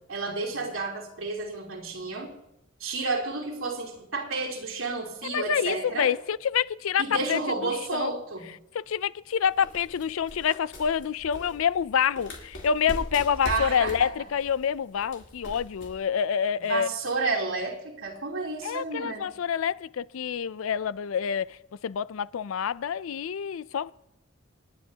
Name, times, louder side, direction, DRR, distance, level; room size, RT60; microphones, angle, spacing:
voice 1, 0.1-2.3 2.8-6.1 7.0-8.5 13.4-14.1 16.6-19.3, right 3 dB, 85° right, 3.2 m, -31 dB
voice 2, 5.2-8.2 8.7-16.9 18.6-21.6 21.8-23.9, left 7 dB, 85° left, 0.4 m, -27 dB
sound 1, 9.4-16.0, left 1 dB, 60° left, 3.3 m, -41 dB
28.5 x 9.7 x 2.8 m
head